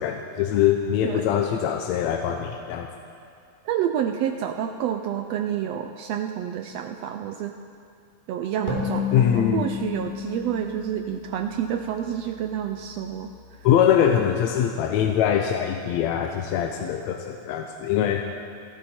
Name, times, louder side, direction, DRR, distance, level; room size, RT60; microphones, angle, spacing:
voice 1, 0.0-2.9 9.1-9.6 13.6-18.3, left 9 dB, 75° left, 4 dB, 1.9 m, -23 dB
voice 2, 1.0-1.4 3.6-7.5 8.3-13.3, right 9 dB, 80° right, 6 dB, 1.5 m, -29 dB
sound 1, 8.7-12.2, left 6 dB, 15° left, 2.8 m, -31 dB
29.0 x 11.0 x 4.3 m, 2.5 s
omnidirectional pair, 3.4 m